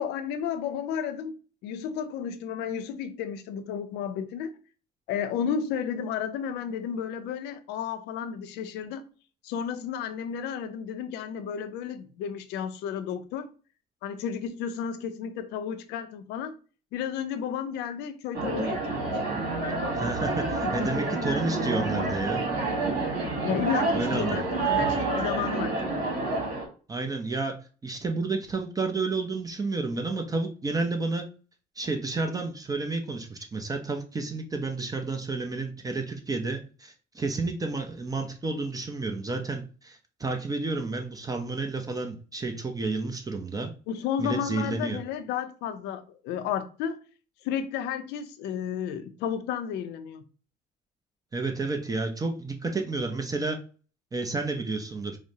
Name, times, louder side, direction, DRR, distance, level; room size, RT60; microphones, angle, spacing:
voice 1, 0.0-4.5 5.1-9.1 9.4-13.5 14.0-16.6 16.9-19.2 20.6-20.9 22.4-22.5 23.4-26.0 43.9-47.0 47.4-50.2, left 8 dB, 90° left, 0.5 m, -32 dB
sound 1, 18.3-26.7, right 3 dB, 60° right, 1.5 m, -28 dB
voice 2, 19.9-22.4 23.9-24.4 26.9-31.3 31.8-43.7 44.2-45.0 51.3-53.6 54.1-55.2, right 3 dB, 20° right, 0.5 m, -31 dB
4.8 x 2.0 x 2.7 m
cardioid pair, 110°, 17 cm